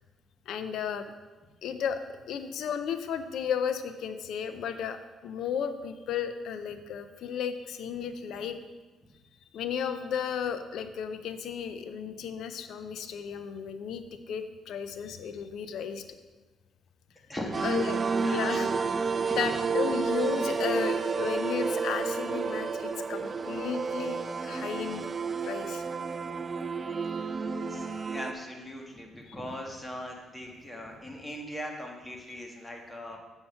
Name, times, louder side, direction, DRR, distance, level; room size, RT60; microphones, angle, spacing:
voice 1, 0.5-1.1 1.6-2.0 2.3-8.6 9.5-16.0 17.6-18.9 19.4-25.1 25.4-25.8, left 7 dB, 75° left, 9 dB, 0.5 m, -34 dB
voice 2, 17.3-18.8 19.1-19.5 20.4-20.6 27.7-33.2, equal, 10° left, 1 dB, 1.5 m, -40 dB
sound 1, 17.5-28.3, right 5 dB, 35° right, 0.5 m, -30 dB
7.1 x 5.6 x 5.6 m, 1.2 s
cardioid pair, 90°, 0 cm